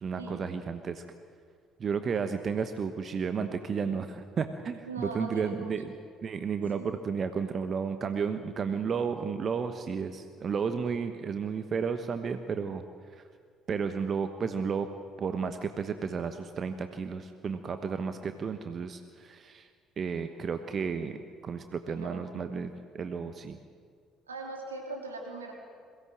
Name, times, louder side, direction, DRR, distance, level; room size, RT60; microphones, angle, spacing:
voice 1, 0.0-1.0 1.8-5.9 6.2-12.8 13.7-14.9 15.2-19.7 20.0-21.2 21.4-23.6, right 6 dB, 40° right, 9 dB, 1.1 m, -32 dB
voice 2, 4.9-5.7 6.8-6.9 21.9-22.3 24.3-25.5, right 3 dB, 85° right, 0 dB, 2.9 m, -40 dB
22.0 x 17.0 x 7.6 m, 2.1 s
figure-of-eight pair, 50°, 0 cm